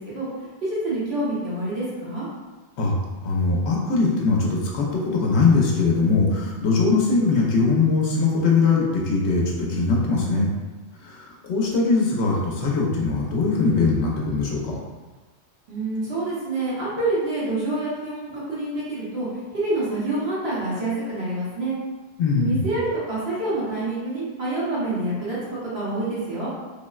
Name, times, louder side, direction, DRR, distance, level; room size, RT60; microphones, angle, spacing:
voice 1, 0.0-2.3 15.7-19.3 19.5-21.8 22.4-26.5, right 2 dB, 70° right, -9 dB, 1.3 m, -27 dB
voice 2, 3.2-10.5 11.0-14.8 22.2-22.7, left 4 dB, 85° left, -2 dB, 0.9 m, -21 dB
3.5 x 2.0 x 2.3 m, 1.3 s
omnidirectional pair, 1.1 m